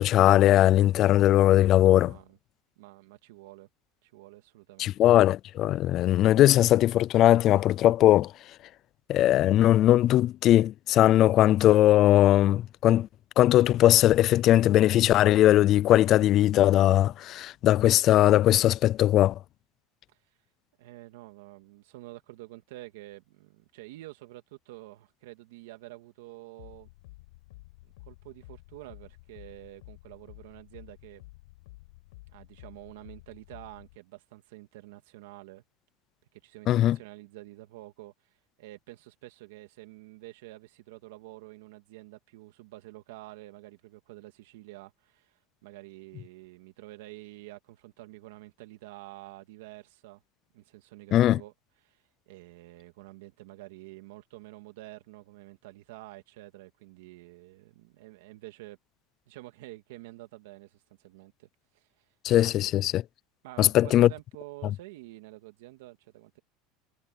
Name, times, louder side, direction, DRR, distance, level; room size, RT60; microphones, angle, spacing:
voice 1, 0.0-2.1 4.8-8.3 9.1-13.1 13.4-19.4 36.7-37.0 51.1-51.4 62.2-63.0 63.6-64.1, left 13 dB, 35° left, 0.3 m, -20 dB
voice 2, 1.8-2.4 2.8-3.7 4.0-4.9 20.1-20.2 20.8-26.9 27.8-31.2 32.3-35.6 36.3-38.1 38.6-50.2 50.5-51.5 51.8-52.0 52.3-58.8 59.3-61.5 61.7-62.0 63.4-66.4, right 18 dB, 80° right, 2.4 m, -48 dB
sound 1, 26.6-34.0, left 21 dB, 85° left, 5.8 m, -51 dB
cardioid pair, 175°, 0 cm